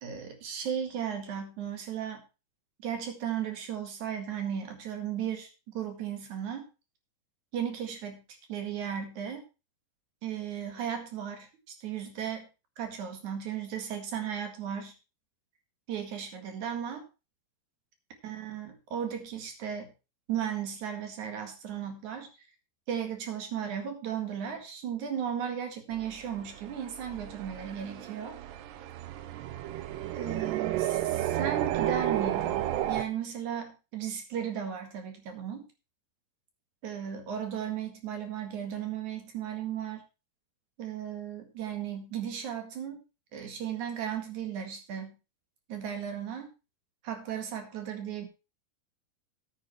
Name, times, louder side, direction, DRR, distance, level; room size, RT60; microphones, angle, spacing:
voice 1, 0.0-2.2 2.8-6.6 7.5-8.2 8.5-9.4 10.2-11.5 11.8-12.5 12.8-14.9 15.9-17.0 18.2-19.9 20.3-22.3 22.9-28.4 30.1-35.7 36.8-40.0 40.8-43.0 43.3-45.2 45.7-46.5 47.0-48.3, right 8 dB, 55° right, 6 dB, 2.9 m, -35 dB
sound 1, 25.9-33.0, right 13 dB, 90° right, 3.0 m, -32 dB
11.0 x 9.2 x 4.4 m, 0.30 s
omnidirectional pair, 4.7 m